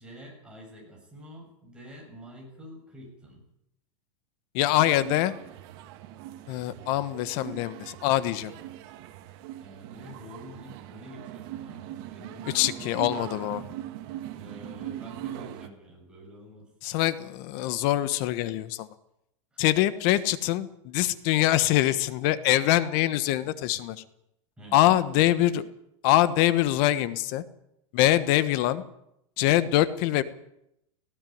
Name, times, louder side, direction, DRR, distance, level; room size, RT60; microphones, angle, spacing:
voice 1, 0.0-3.4 9.6-13.7 14.3-16.7 19.5-19.6 24.6-25.0, equal, 5° right, -1 dB, 7.1 m, -47 dB
voice 2, 4.5-5.3 6.5-8.5 12.5-13.6 16.8-18.9 19.6-24.0 24.7-25.7 26.0-27.4 27.9-28.8 29.4-30.2, left 14 dB, 45° left, 14 dB, 1.3 m, -24 dB
sound 1, 4.6-15.7, right 13 dB, 45° right, 1.8 m, -41 dB
18.5 x 16.0 x 9.4 m, 0.80 s
supercardioid pair, 160°, 17 cm